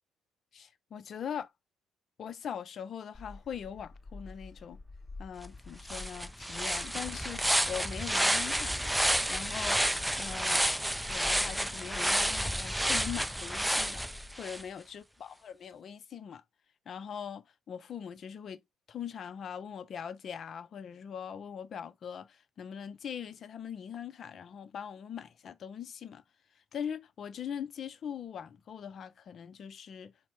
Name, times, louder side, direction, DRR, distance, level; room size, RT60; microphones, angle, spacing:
voice 1, 0.5-1.5 2.2-4.8 5.2-9.0 9.3-9.8 10.2-10.6 11.1-14.0 14.4-16.4 16.9-18.6 18.9-26.2 26.7-30.1, left 8 dB, 55° left, 0.6 m, -41 dB
Gull seagull, 3.1-14.3, left 3 dB, 35° left, 2.9 m, -49 dB
sound 1, 5.4-5.5 5.8-14.6, right 1 dB, 5° right, 0.4 m, -30 dB
4.2 x 2.2 x 4.5 m
hypercardioid pair, 55°, 0 cm